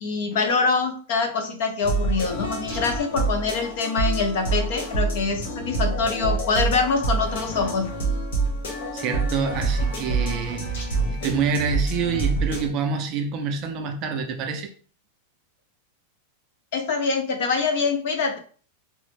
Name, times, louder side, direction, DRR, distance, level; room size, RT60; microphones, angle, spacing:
voice 1, 0.0-7.9 16.7-18.4, left 4 dB, 50° left, 0.6 m, -24 dB
sound 1, 1.8-12.7, right 3 dB, 80° left, 1.2 m, -26 dB
voice 2, 8.9-10.6 11.1-14.7, right 5 dB, 30° right, 0.4 m, -27 dB
3.1 x 2.0 x 3.2 m
supercardioid pair, 175°, 0 cm